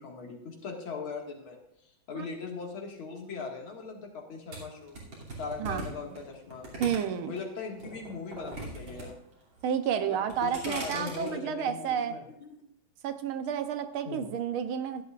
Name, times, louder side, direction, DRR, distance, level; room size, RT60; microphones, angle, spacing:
voice 1, 0.0-1.6 2.1-5.0 5.4-6.7 7.3-9.2 10.0-12.6 14.0-14.4, left 4 dB, 80° left, 0 dB, 2.8 m, -39 dB
sound 1, 4.5-7.4 7.8-9.1 9.3-9.8 10.2-11.3, right 2 dB, 70° right, 3.6 m, -40 dB
voice 2, 5.6-5.9 6.8-7.3 9.6-12.1 13.0-15.0, right 8 dB, 90° right, 8 dB, 1.7 m, -31 dB
15.5 x 11.5 x 2.5 m, 0.77 s
omnidirectional pair, 2.2 m